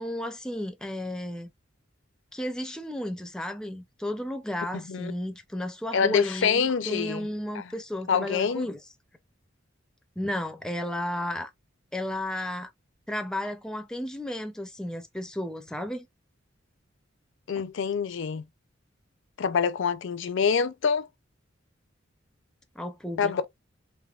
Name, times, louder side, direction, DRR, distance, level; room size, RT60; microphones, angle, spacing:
voice 1, 0.0-1.5 2.3-8.8 10.2-11.5 11.9-12.7 13.1-16.1 22.8-23.4, left 1 dB, 5° left, 0.4 m, -33 dB
voice 2, 5.9-7.3 7.6-7.7 8.1-8.7 17.5-18.4 19.4-21.1 23.2-23.4, left 6 dB, 65° left, 0.4 m, -26 dB
3.4 x 2.9 x 2.3 m
head